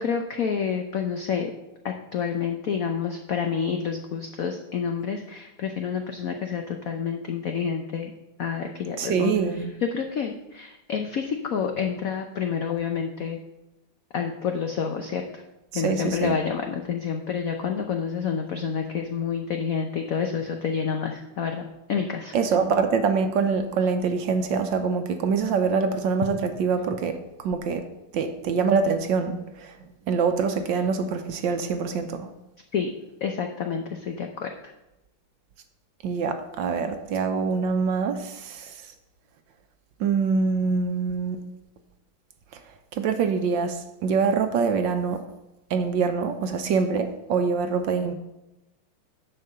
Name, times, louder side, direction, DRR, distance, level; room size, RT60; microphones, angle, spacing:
voice 1, 0.0-1.5 1.8-8.1 8.4-9.3 9.9-13.4 14.1-15.4 15.7-22.3 32.7-32.9 33.2-34.5, left 6 dB, 80° left, 0.7 m, -28 dB
voice 2, 9.0-9.7 15.7-16.4 22.3-27.9 28.1-29.8 30.1-32.3 36.0-38.9 40.0-41.4 42.5-42.6 42.9-45.2 45.7-48.1, right 5 dB, 70° right, 1.3 m, -25 dB
10.5 x 4.5 x 6.7 m
omnidirectional pair, 2.4 m